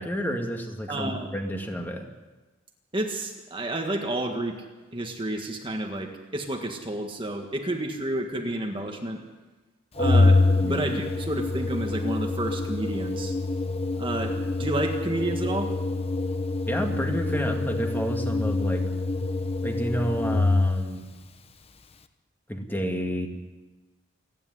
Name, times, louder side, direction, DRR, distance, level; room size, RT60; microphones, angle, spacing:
voice 1, 0.0-2.1 10.6-10.8 16.7-18.8 19.6-21.0 22.5-23.3, equal, 10° left, 2 dB, 2.1 m, -30 dB
voice 2, 0.9-1.3 2.9-4.6 4.9-9.2 10.0-13.4 14.0-15.7, right 1 dB, 25° right, 3 dB, 1.7 m, -30 dB
Organ, 10.0-21.0, left 2 dB, 30° left, 1.0 m, -25 dB
29.0 x 10.5 x 9.9 m, 1.2 s
head